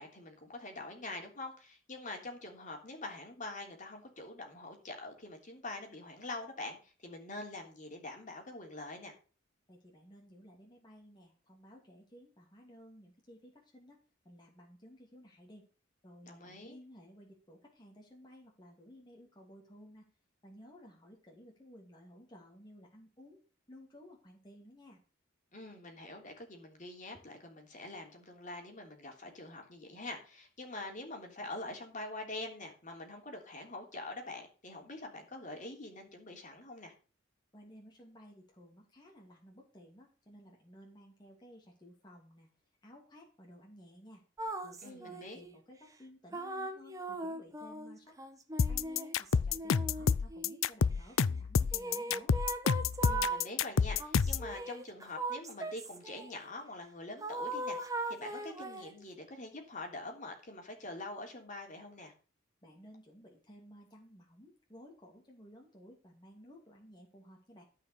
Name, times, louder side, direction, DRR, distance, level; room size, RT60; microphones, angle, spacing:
voice 1, 0.0-9.1 16.2-16.8 25.5-36.9 44.8-45.4 53.0-57.8 58.1-62.1, left 2 dB, 40° left, 2 dB, 3.2 m, -45 dB
voice 2, 9.7-15.7 16.0-20.1 20.4-23.4 23.7-25.0 37.5-42.5 42.8-44.2 44.6-48.2 48.7-52.3 62.6-67.6, equal, 20° left, -1 dB, 2.7 m, -56 dB
sound 1, 44.4-45.5 46.3-50.7 51.7-53.5 54.0-56.4 57.2-59.0, right 2 dB, 15° right, 1.4 m, -39 dB
sound 2, 48.6-54.5, left 6 dB, 85° left, 0.5 m, -28 dB
13.5 x 5.8 x 6.8 m, 0.36 s
head